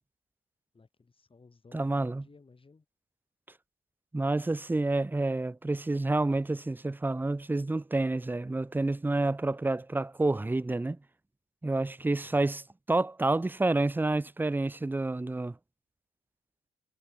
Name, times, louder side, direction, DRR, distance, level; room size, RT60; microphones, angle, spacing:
voice 1, 0.7-2.9 12.2-12.6, left 4 dB, 25° left, 7.0 m, -57 dB
voice 2, 1.7-2.3 4.1-11.0 11.6-12.6 12.9-15.5, right 2 dB, 10° right, 0.6 m, -29 dB
cardioid pair, 90°, 20 cm